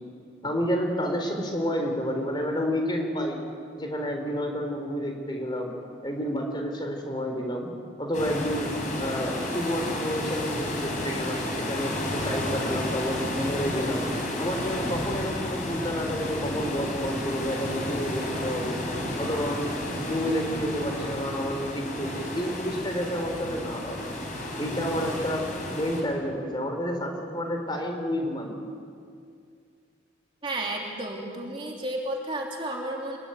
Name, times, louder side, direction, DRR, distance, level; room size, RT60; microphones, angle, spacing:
voice 1, 0.4-3.4 3.8-5.7 6.0-7.7 8.0-14.0 14.4-18.9 19.2-19.8 20.1-24.0 24.6-25.4 25.7-28.6, equal, 25° left, 3 dB, 4.2 m, -30 dB
sound 1, 8.1-26.0, left 1 dB, 40° left, 6.4 m, -32 dB
voice 2, 30.4-33.2, right 1 dB, 25° right, -1 dB, 3.1 m, -32 dB
27.0 x 22.5 x 9.5 m, 2.3 s
head